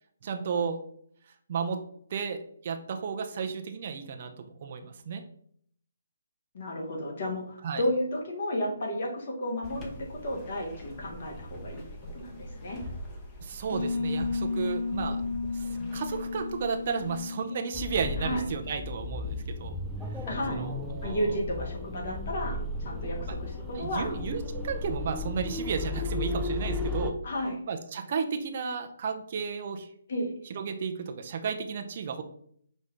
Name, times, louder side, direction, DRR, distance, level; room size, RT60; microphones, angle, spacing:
voice 1, 0.2-0.8 1.5-1.8 2.1-5.2 7.6-7.8 13.4-15.2 15.5-19.8 20.5-21.3 23.7-27.2 27.7-29.9 30.5-32.2, right 6 dB, 45° right, 5 dB, 0.5 m, -33 dB
voice 2, 6.5-11.8 12.1-12.8 18.2-18.4 20.3-20.7 21.0-24.1 27.2-27.6 30.1-30.3, equal, 55° left, -1 dB, 1.4 m, -32 dB
sound 1, 9.6-17.2, left 1 dB, 20° left, 0.9 m, -43 dB
sound 2, 13.7-19.3, left 4 dB, 90° left, 1.7 m, -34 dB
sound 3, 17.7-27.1, left 2 dB, ahead, 0.4 m, -34 dB
5.1 x 2.6 x 3.4 m, 0.64 s
hypercardioid pair, 150°, 0 cm